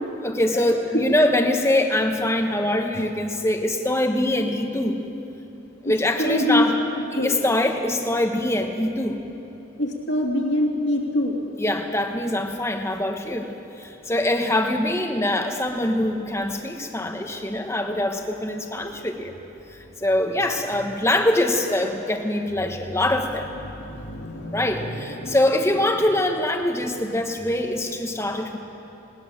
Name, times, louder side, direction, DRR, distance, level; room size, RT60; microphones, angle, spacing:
voice 1, 0.2-5.0 5.8-6.8 7.1-9.2 11.6-19.3 19.7-23.5 24.5-28.6, left 1 dB, 15° left, 4 dB, 1.3 m, -23 dB
voice 2, 6.2-6.6 7.2-7.3 9.8-11.4 23.6-25.4, equal, 60° left, 0 dB, 3.0 m, -25 dB
19.5 x 19.5 x 7.5 m, 2.9 s
head